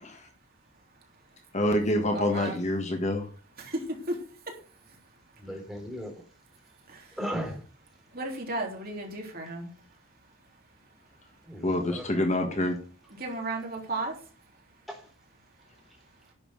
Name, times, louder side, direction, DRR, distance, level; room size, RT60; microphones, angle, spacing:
voice 1, 1.5-3.3 11.6-12.8, left 1 dB, 30° left, 1.5 m, -26 dB
voice 2, 2.1-2.6 3.6-3.8 4.1-4.2 6.9-7.0 8.1-9.7 13.2-14.1, right 2 dB, 45° right, 3.5 m, -33 dB
voice 3, 5.4-6.2 7.2-7.6 11.4-12.1 14.9-15.0, equal, ahead, 3.8 m, -36 dB
11.0 x 7.1 x 6.5 m
head